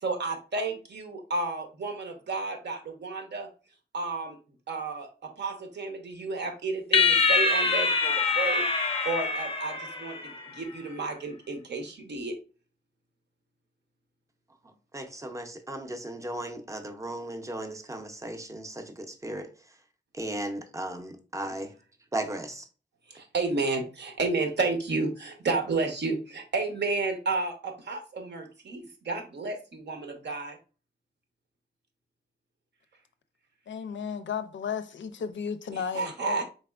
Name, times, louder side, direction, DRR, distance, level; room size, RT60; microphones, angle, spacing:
voice 1, 0.0-3.5 3.9-4.4 4.7-8.6 9.0-12.4 21.5-21.6 23.1-30.6 35.7-36.4, right 3 dB, 70° right, 0.8 m, -32 dB
sound 1, 6.9-10.5, left 4 dB, 30° left, 0.5 m, -25 dB
voice 2, 14.9-19.5 20.1-21.7 22.1-22.6, right 1 dB, 15° right, 0.5 m, -36 dB
voice 3, 33.7-36.4, left 7 dB, 85° left, 0.4 m, -34 dB
4.1 x 3.4 x 2.3 m
wide cardioid pair, 155°, 19 cm